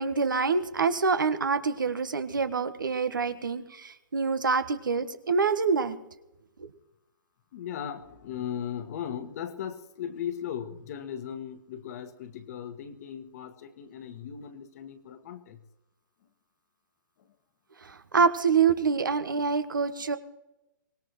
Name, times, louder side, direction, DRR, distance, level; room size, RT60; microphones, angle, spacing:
voice 1, 0.0-6.0 17.8-20.2, right 5 dB, 75° right, 11 dB, 1.3 m, -26 dB
voice 2, 7.5-15.6 17.2-17.3, left 9 dB, 50° left, 8 dB, 1.6 m, -37 dB
24.0 x 19.0 x 3.1 m, 0.91 s
figure-of-eight pair, 120°, 11 cm